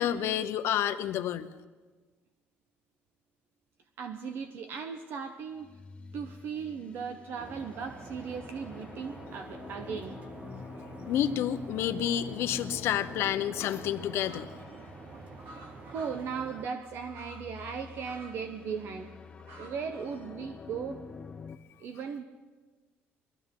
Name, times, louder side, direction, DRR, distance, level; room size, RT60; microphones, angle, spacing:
voice 1, 0.0-1.5 11.1-14.5, left 10 dB, 65° left, 10 dB, 0.7 m, -29 dB
voice 2, 4.0-5.7 6.1-10.2 15.9-19.1 19.6-21.0 21.8-22.2, right 6 dB, 55° right, 7 dB, 0.7 m, -37 dB
sound 1, 5.5-15.8 16.8-21.6, left 5 dB, 25° left, 0.5 m, -47 dB
sound 2, 7.4-16.7, right 3 dB, 30° right, 0.9 m, -47 dB
sound 3, 14.2-18.4 19.0-20.5 20.9-21.0, right 1 dB, 80° right, 2.7 m, -52 dB
21.5 x 14.0 x 3.7 m, 1.3 s
cardioid pair, 160°, 5 cm